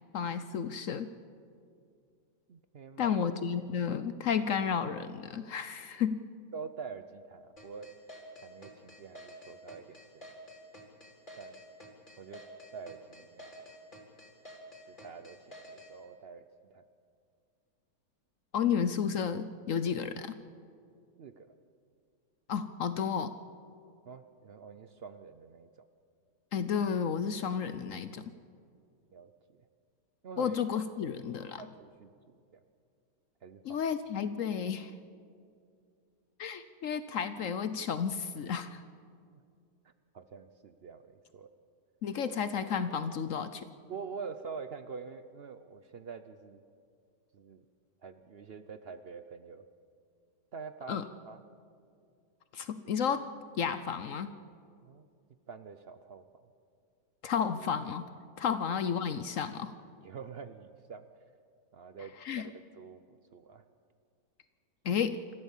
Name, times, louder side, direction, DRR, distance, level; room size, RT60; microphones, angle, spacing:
voice 1, 0.1-1.1 3.0-6.3 18.5-20.3 22.5-23.3 26.5-28.2 30.4-31.7 33.6-34.9 36.4-38.8 42.0-43.7 50.9-51.0 52.5-53.3 53.6-54.3 57.2-58.1 58.4-59.7 62.2-62.5 64.8-65.2, left 7 dB, 60° left, 12 dB, 0.9 m, -32 dB
voice 2, 2.5-3.2 6.5-7.9 8.4-10.3 11.4-11.6 12.2-12.4 12.7-13.8 14.9-15.4 15.7-16.4 16.7-16.8 21.2-21.5 24.1-25.9 29.1-29.6 30.2-30.6 31.6-32.6 33.4-33.8 39.3-39.4 40.1-41.5 43.9-46.6 47.3-47.6 48.0-49.6 50.5-51.4 54.8-55.1 55.5-56.2 60.0-61.0 61.7-62.1 62.4-63.6 64.9-65.0, right 5 dB, 60° right, 10 dB, 0.6 m, -46 dB
sound 1, 7.6-15.9, left 1 dB, 30° left, 4.0 m, -50 dB
27.0 x 14.5 x 7.3 m, 2.3 s
omnidirectional pair, 1.8 m